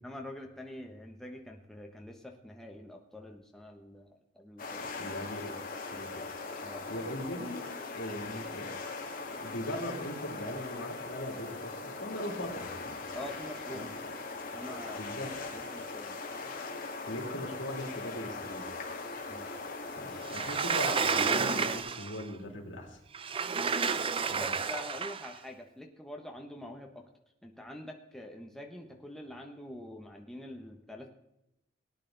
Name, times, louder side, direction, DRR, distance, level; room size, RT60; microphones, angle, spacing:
voice 1, 0.0-5.1 6.6-6.9 13.1-14.0 14.5-15.0 15.5-16.2 19.3-19.5 24.3-27.0 27.4-31.1, left 1 dB, ahead, 1 dB, 1.1 m, -45 dB
sound 1, 4.6-21.8, left 3 dB, 45° left, 2.2 m, -40 dB
voice 2, 5.0-5.6 5.9-6.1 6.6-7.6 7.9-8.9 9.3-12.7 13.7-13.9 15.0-15.3 17.1-18.7 20.0-23.0 24.3-24.5, equal, 75° left, 1 dB, 3.3 m, -39 dB
Sliding door, 20.3-22.2 23.1-25.3, right 5 dB, 30° right, 0.5 m, -30 dB
18.5 x 10.0 x 3.9 m, 0.84 s
head